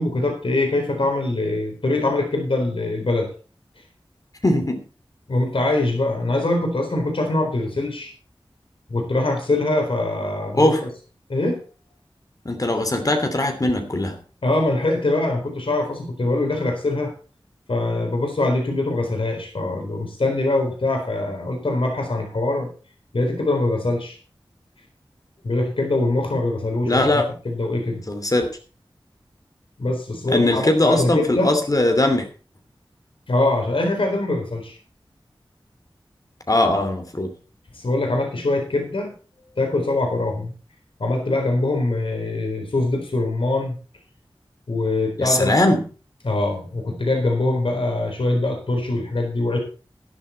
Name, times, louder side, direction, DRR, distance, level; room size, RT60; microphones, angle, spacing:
voice 1, 0.0-3.3 5.3-8.1 8.9-10.9 11.3-11.6 14.4-17.1 17.7-22.7 23.1-24.2 25.4-28.0 29.8-31.5 33.3-34.8 37.7-39.1 39.6-40.5 41.0-43.8 44.7-45.5 46.2-49.6, left 2 dB, 80° left, 2 dB, 4.1 m, -23 dB
voice 2, 4.4-4.8 10.5-10.8 12.4-14.2 26.8-27.2 28.1-28.5 30.3-32.3 36.5-37.3 45.2-45.8, left 1 dB, 40° left, 5 dB, 2.9 m, -20 dB
12.0 x 11.0 x 4.3 m, 0.37 s
wide cardioid pair, 55°, 9 cm